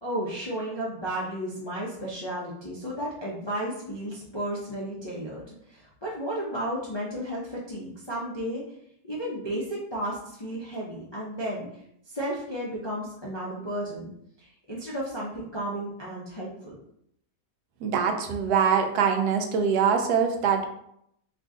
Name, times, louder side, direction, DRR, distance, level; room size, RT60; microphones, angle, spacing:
voice 1, 0.0-8.6 9.0-11.7 12.1-14.1 14.4-16.8, right 1 dB, 45° left, -6 dB, 0.3 m, -33 dB
voice 2, 17.8-20.7, right 7 dB, 90° right, 5 dB, 1.1 m, -23 dB
3.0 x 2.5 x 3.6 m, 0.73 s
omnidirectional pair, 1.6 m